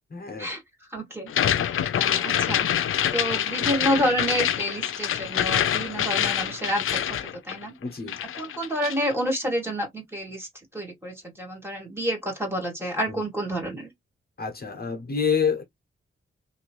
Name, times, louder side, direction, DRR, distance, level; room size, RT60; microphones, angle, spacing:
voice 1, 0.1-0.5 7.8-8.2 13.1-13.2 14.4-15.6, left 6 dB, 45° left, 1.1 m, -27 dB
voice 2, 0.9-2.7 3.1-7.2 7.4-7.7 8.3-13.9, equal, 10° right, 1.8 m, -29 dB
sound 1, 1.3-9.1, left 9 dB, 80° left, 0.5 m, -26 dB
2.9 x 2.6 x 2.9 m
wide cardioid pair, 105°, 21 cm